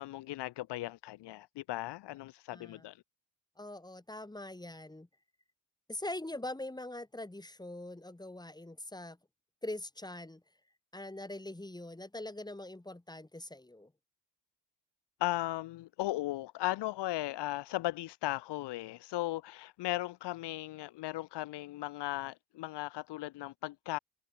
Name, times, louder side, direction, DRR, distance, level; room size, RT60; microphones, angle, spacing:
voice 1, 0.0-3.0 15.2-24.0, left 16 dB, 80° left, 1.2 m, -37 dB
voice 2, 2.5-2.9 3.6-5.1 5.9-9.2 9.6-10.4 10.9-13.9, left 1 dB, 10° left, 3.5 m, -43 dB
cardioid pair, 75°, 41 cm